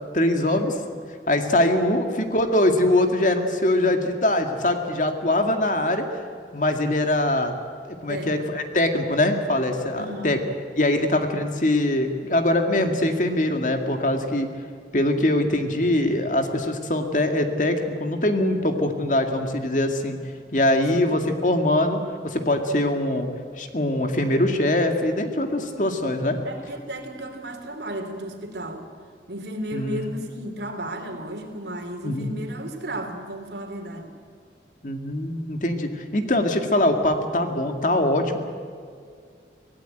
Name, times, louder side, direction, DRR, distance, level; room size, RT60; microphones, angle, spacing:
voice 1, 0.1-0.8 1.3-6.0 6.5-7.5 7.9-10.4 10.8-14.5 14.9-20.2 20.5-23.3 23.6-26.4 29.7-30.0 32.0-32.4 34.8-38.4, left 1 dB, 45° left, 5 dB, 2.0 m, -22 dB
voice 2, 8.1-8.5 10.0-10.4 20.9-21.2 26.4-28.8 29.3-34.1, right 1 dB, 75° right, 5 dB, 3.2 m, -34 dB
24.5 x 16.5 x 9.1 m, 2.2 s
head